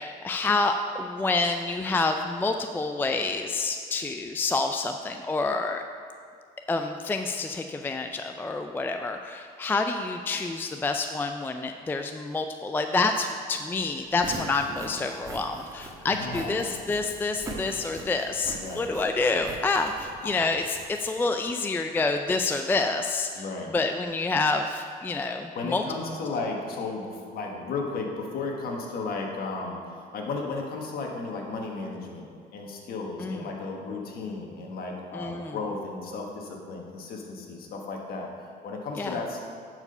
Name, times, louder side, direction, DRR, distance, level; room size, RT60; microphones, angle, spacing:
voice 1, 0.0-5.8 6.7-23.4 23.7-25.8 33.2-33.5 35.1-35.6 39.0-39.2, left 3 dB, 10° left, 5 dB, 0.3 m, -28 dB
Walk footsteps, 14.0-20.8, right 1 dB, 20° right, 1.5 m, -42 dB
voice 2, 16.1-16.6 18.5-18.9 20.2-20.3 23.3-23.7 25.5-38.3 38.6-39.4, left 3 dB, 65° left, 0 dB, 1.6 m, -34 dB
10.5 x 4.9 x 5.4 m, 2.2 s
cardioid pair, 110°, 17 cm